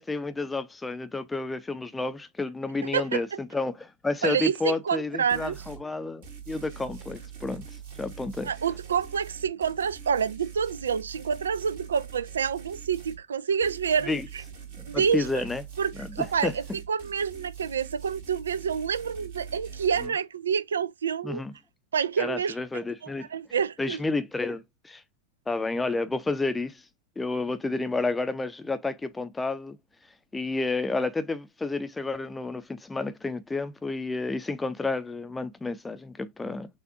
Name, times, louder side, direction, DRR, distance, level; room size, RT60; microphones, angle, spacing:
voice 1, 0.0-7.7 8.0-8.5 14.1-14.3 14.8-15.6 16.0-16.5 21.2-21.5 22.2-23.3 23.8-25.0 25.5-26.8 27.2-29.8 30.3-36.7, left 3 dB, 10° left, 0.6 m, -30 dB
voice 2, 4.2-5.6 8.4-14.4 14.9-15.4 15.8-21.4 21.9-24.0, right 7 dB, 70° right, 0.3 m, -28 dB
sound 1, 5.3-5.8 6.2-13.2 13.6-20.1, right 7 dB, 55° right, 1.7 m, -43 dB
6.6 x 2.5 x 2.4 m
figure-of-eight pair, 90°, 0 cm